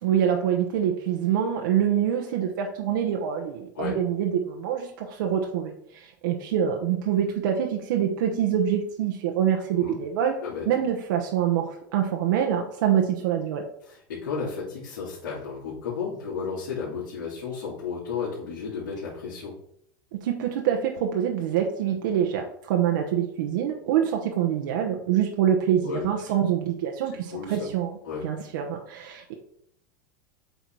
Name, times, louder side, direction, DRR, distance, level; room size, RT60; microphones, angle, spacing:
voice 1, 0.0-10.4 10.7-13.6 20.1-28.0 28.2-29.3, right 9 dB, 70° right, 2 dB, 1.0 m, -25 dB
voice 2, 13.8-19.5 25.8-26.1 27.3-27.7 28.0-28.2, left 5 dB, 85° left, -8 dB, 3.0 m, -33 dB
8.1 x 4.0 x 4.6 m, 0.70 s
supercardioid pair, 130°, 11 cm